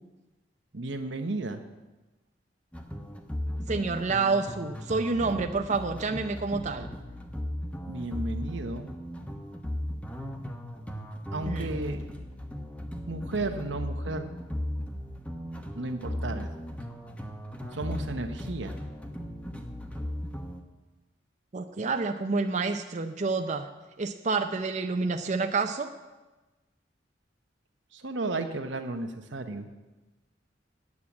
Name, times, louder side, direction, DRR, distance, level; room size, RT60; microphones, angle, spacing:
voice 1, 0.7-1.6 7.9-8.9 11.3-12.0 13.1-14.3 15.8-16.5 17.7-18.8 27.9-29.7, right 2 dB, 85° right, 6 dB, 1.0 m, -33 dB
sound 1, 2.7-20.6, equal, 5° left, 1.0 m, -37 dB
voice 2, 3.7-6.9 11.5-11.7 21.5-23.7 24.0-25.9, right 4 dB, 40° right, 5 dB, 0.6 m, -28 dB
9.7 x 7.5 x 8.5 m, 1.1 s
head